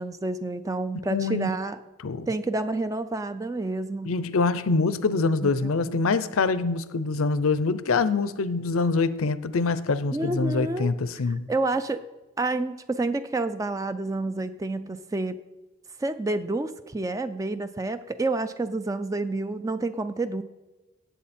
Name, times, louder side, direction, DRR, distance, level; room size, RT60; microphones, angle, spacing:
voice 1, 0.0-1.8 2.3-4.2 5.4-6.0 10.1-10.9 11.5-12.0 12.4-15.4 16.0-20.4, right 2 dB, 15° right, 0.3 m, -29 dB
voice 2, 1.1-1.6 2.0-2.3 4.0-11.5, left 4 dB, 85° left, 0.6 m, -25 dB
17.0 x 8.3 x 4.3 m
head